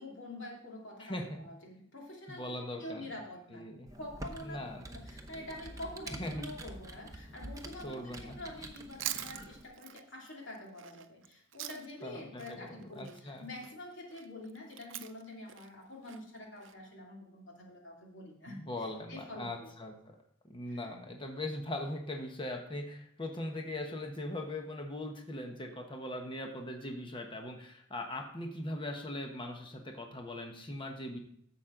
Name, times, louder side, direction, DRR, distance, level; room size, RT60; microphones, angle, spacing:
voice 1, 0.0-2.4 2.8-3.7 4.0-4.6 4.9-19.7 20.6-20.9, left 1 dB, 70° left, -1 dB, 2.7 m, -46 dB
voice 2, 1.0-1.4 2.3-3.1 3.5-3.9 4.4-5.0 6.1-6.4 7.8-8.4 12.0-13.5 18.5-20.2 20.4-31.2, left 1 dB, 25° left, 3 dB, 1.1 m, -40 dB
Computer keyboard, 3.9-9.7, right 1 dB, 15° right, 0.9 m, -47 dB
Chewing mastication, 8.7-12.1 12.4-16.7, right 12 dB, 70° right, 0.6 m, -44 dB
11.5 x 7.5 x 3.8 m, 0.67 s
head